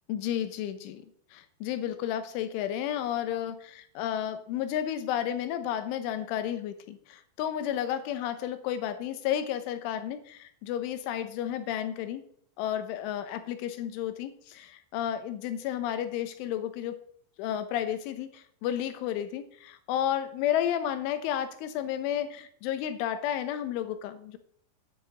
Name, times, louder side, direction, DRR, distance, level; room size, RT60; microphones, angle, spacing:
voice 1, 0.1-1.0 1.3-12.2 12.6-17.0 17.4-24.4, left 10 dB, 85° left, 10 dB, 3.5 m, -32 dB
9.3 x 6.7 x 8.1 m, 0.62 s
omnidirectional pair, 5.4 m